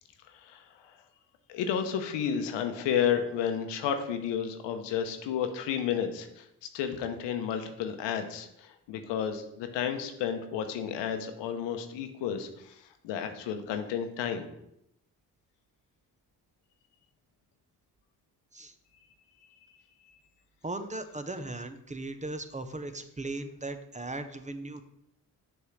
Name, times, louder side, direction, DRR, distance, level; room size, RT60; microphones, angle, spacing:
voice 1, 0.3-0.6 1.5-6.5 6.7-14.5, left 8 dB, 85° left, 7 dB, 0.8 m, -32 dB
voice 2, 20.6-24.8, right 2 dB, 15° right, 9 dB, 0.7 m, -37 dB
6.8 x 3.6 x 6.3 m, 0.80 s
supercardioid pair, 55°, 42 cm